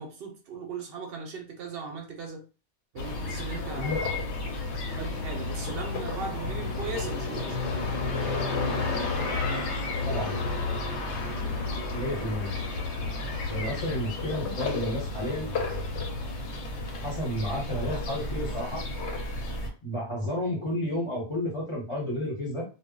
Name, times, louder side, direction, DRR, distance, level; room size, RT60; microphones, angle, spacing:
voice 1, 0.0-2.4 2.9-3.9 4.9-7.6 11.4-11.6, right 4 dB, 65° right, 3 dB, 0.7 m, -38 dB
sound 1, 3.0-19.7, left 3 dB, 85° left, 0.9 m, -31 dB
voice 2, 10.1-10.4 11.9-12.5 13.5-15.5 17.0-18.8 19.8-22.6, left 1 dB, 30° left, -4 dB, 0.9 m, -31 dB
2.1 x 2.1 x 3.7 m, 0.34 s
omnidirectional pair, 1.1 m